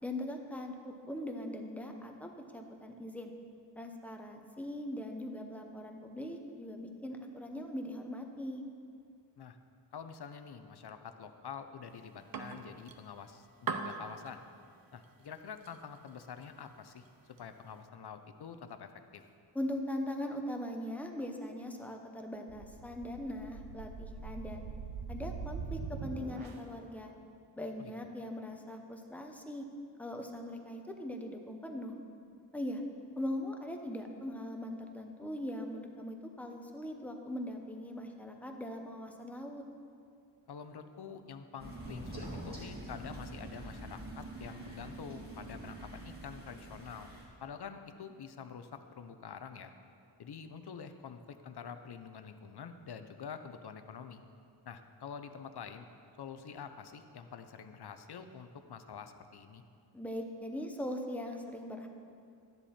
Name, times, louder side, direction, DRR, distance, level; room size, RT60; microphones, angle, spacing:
voice 1, 0.0-3.3 3.8-8.6 19.5-24.7 25.1-27.1 27.6-29.7 30.0-32.0 32.5-32.8 33.2-39.6 59.9-61.9, left 1 dB, 5° left, 3 dB, 0.7 m, -40 dB
voice 2, 9.9-14.4 14.9-17.0 17.4-19.2 27.8-27.9 40.5-47.1 47.4-49.7 50.2-54.2 54.7-55.9 56.2-59.6, left 6 dB, 60° left, 8 dB, 0.7 m, -47 dB
sound 1, 11.9-17.8, right 5 dB, 50° right, 0.7 m, -45 dB
sound 2, 22.5-26.8, right 5 dB, 85° right, 0.8 m, -43 dB
Crow, 41.6-47.3, right 1 dB, 20° right, 2.0 m, -45 dB
12.0 x 10.0 x 4.3 m, 2.4 s
wide cardioid pair, 165°, 46 cm